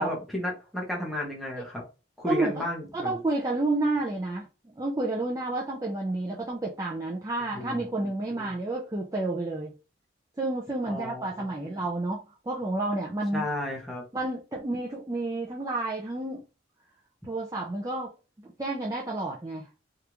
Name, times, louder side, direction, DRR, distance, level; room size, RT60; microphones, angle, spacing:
voice 1, 0.0-1.8 2.2-3.2 7.5-8.5 10.9-11.5 13.3-14.0, left 1 dB, ahead, 0.9 m, -33 dB
voice 2, 2.3-2.6 2.9-4.5 4.8-9.7 10.4-13.5 14.1-16.4 17.2-18.1 18.4-19.7, right 2 dB, 15° right, 0.4 m, -30 dB
3.4 x 2.4 x 2.9 m
head